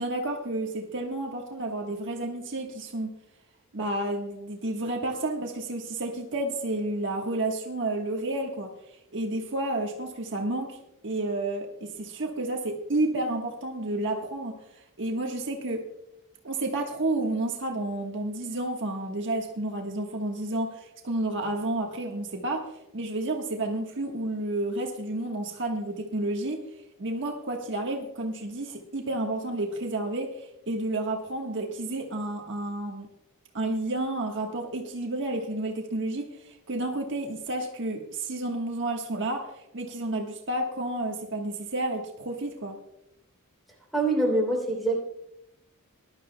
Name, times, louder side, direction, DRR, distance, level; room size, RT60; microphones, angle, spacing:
voice 1, 0.0-3.1 3.7-8.7 9.1-10.8 11.0-14.5 15.0-15.8 16.4-22.6 22.9-26.6 27.0-33.1 33.5-42.7, right 2 dB, 55° right, 1 dB, 1.3 m, -31 dB
voice 2, 43.9-45.0, right 2 dB, ahead, -2 dB, 3.1 m, -24 dB
20.0 x 11.5 x 2.2 m, 0.84 s
head